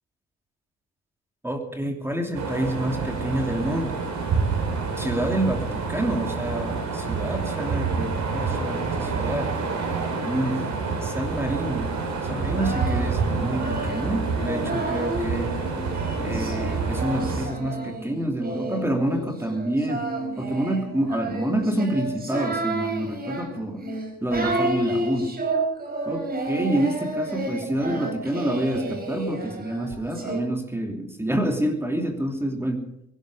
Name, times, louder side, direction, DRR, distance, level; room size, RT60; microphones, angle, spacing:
voice 1, 1.4-4.0 5.0-9.5 10.2-11.9 12.3-15.6 16.2-20.1 20.4-23.8 24.2-25.3 26.1-32.8, right 1 dB, 10° right, 3 dB, 2.9 m, -28 dB
sound 1, 2.3-17.5, right 4 dB, 65° right, 5.3 m, -28 dB
Singing, 12.3-15.4 15.9-30.4, right 2 dB, 30° right, 5.3 m, -31 dB
23.0 x 12.0 x 5.0 m, 0.80 s
cardioid pair, 90°, 30 cm